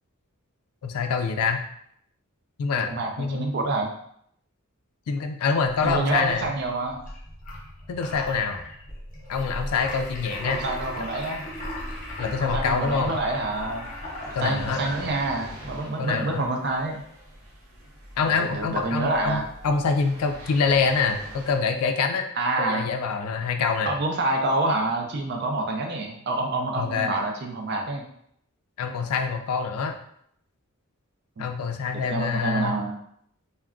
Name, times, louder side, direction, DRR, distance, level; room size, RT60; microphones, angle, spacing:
voice 1, 0.8-1.6 2.6-2.9 3.2-3.5 5.1-6.5 7.9-8.6 9.3-10.6 11.0-11.1 12.2-13.1 14.3-14.8 16.0-16.5 18.2-22.3 22.6-24.0 26.8-27.2 28.8-30.0 31.4-32.8, left 5 dB, 85° left, 6 dB, 0.4 m, -25 dB
voice 2, 2.8-3.9 5.8-7.0 10.4-11.4 12.4-13.9 14.4-17.0 18.2-19.5 22.4-22.9 23.8-28.0 31.4-31.5 31.9-33.0, right 2 dB, 50° right, 2 dB, 0.5 m, -27 dB
sound 1, 5.7-15.4, left 1 dB, 35° left, 0.6 m, -37 dB
sound 2, 11.6-21.5, equal, 75° right, 0.8 m, -45 dB
2.3 x 2.1 x 3.6 m, 0.70 s
head